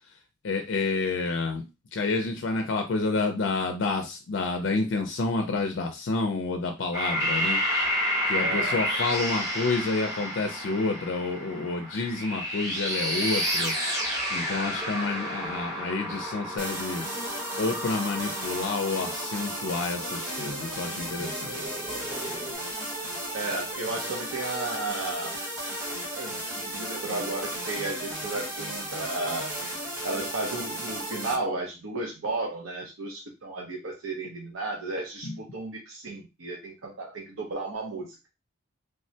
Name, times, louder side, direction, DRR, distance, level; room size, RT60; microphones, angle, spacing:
voice 1, 0.4-1.6 1.9-7.6 8.3-13.7 14.3-17.0 17.6-21.6 35.2-35.3, left 3 dB, 65° left, 4 dB, 0.4 m, -29 dB
sound 1, 6.9-22.5, equal, 20° right, 0.8 m, -31 dB
voice 2, 8.4-8.9 23.3-25.4 26.2-29.5 30.0-38.3, right 2 dB, 90° right, 0 dB, 0.7 m, -34 dB
sound 2, 16.6-31.3, right 1 dB, 65° right, 1.4 m, -34 dB
3.4 x 2.1 x 2.6 m, 0.26 s
head